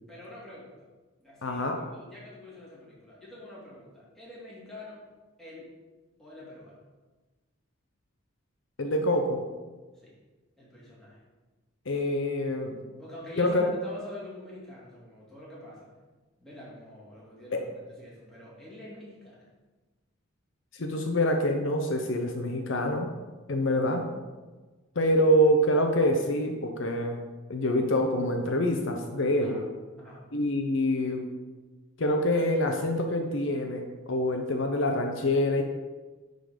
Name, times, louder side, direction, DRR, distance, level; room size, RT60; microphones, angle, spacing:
voice 1, 0.1-0.8 1.2-5.0 5.4-5.7 6.2-6.8 10.0-10.2 10.6-11.2 13.0-15.9 16.4-19.4 29.4-29.6 30.0-30.2, left 1 dB, ahead, -8 dB, 2.5 m, -46 dB
voice 2, 1.4-1.8 8.8-9.4 11.9-12.8 13.4-13.7 17.5-17.6 20.7-23.1 23.5-24.0 25.0-27.2 27.5-29.6 30.3-31.3 32.0-35.6, left 1 dB, 65° left, 3 dB, 0.8 m, -26 dB
10.5 x 3.9 x 5.1 m, 1.3 s
head